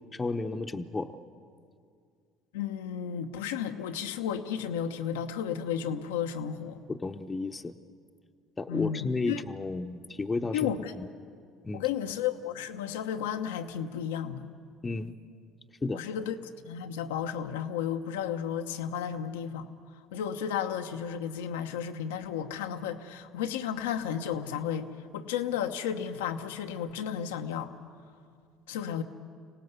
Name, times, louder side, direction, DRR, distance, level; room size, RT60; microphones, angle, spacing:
voice 1, 0.1-1.2 6.9-7.7 8.6-10.7 11.0-11.1 11.6-11.8 14.8-15.2 15.8-16.0, left 3 dB, 25° left, 6 dB, 0.9 m, -32 dB
voice 2, 2.5-6.8 8.7-9.4 10.5-10.9 11.7-14.4 15.9-16.4 16.6-19.7 20.1-27.7 28.7-29.0, left 8 dB, 85° left, 7 dB, 1.0 m, -33 dB
25.5 x 18.0 x 8.1 m, 2.2 s
hypercardioid pair, 70°, 0 cm